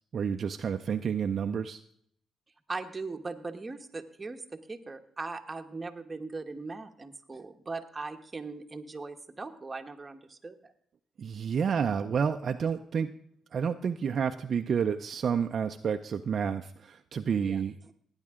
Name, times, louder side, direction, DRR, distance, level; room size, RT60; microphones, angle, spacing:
voice 1, 0.1-1.8 11.2-13.1 13.5-17.7, right 7 dB, 50° right, 6 dB, 0.5 m, -30 dB
voice 2, 2.7-10.7 17.4-17.9, right 3 dB, 25° right, 5 dB, 1.2 m, -40 dB
16.5 x 9.8 x 3.7 m, 0.65 s
cardioid pair, 90°, 0 cm